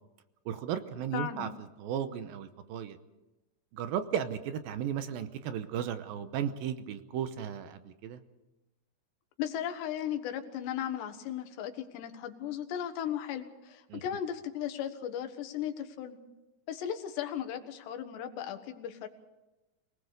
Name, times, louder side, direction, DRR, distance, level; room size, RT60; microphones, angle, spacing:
voice 1, 0.5-1.5 1.8-3.0 3.7-8.2 13.9-14.0, right 9 dB, 75° right, 10 dB, 2.4 m, -35 dB
voice 2, 1.1-1.5 9.4-16.2 16.7-19.1, left 10 dB, 85° left, 8 dB, 3.6 m, -36 dB
24.5 x 19.0 x 6.7 m, 1.0 s
omnidirectional pair, 4.8 m